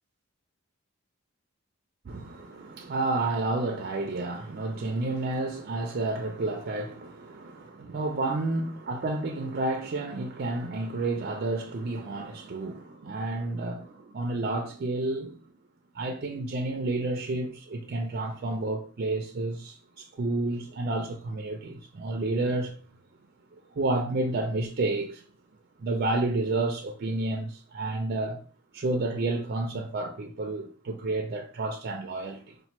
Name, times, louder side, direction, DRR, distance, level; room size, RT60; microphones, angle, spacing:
voice 1, 2.1-15.4 15.9-22.8 23.7-25.2 25.8-28.4 28.7-32.5, right 2 dB, 45° right, 0.4 m, -30 dB
4.2 x 2.1 x 2.9 m
head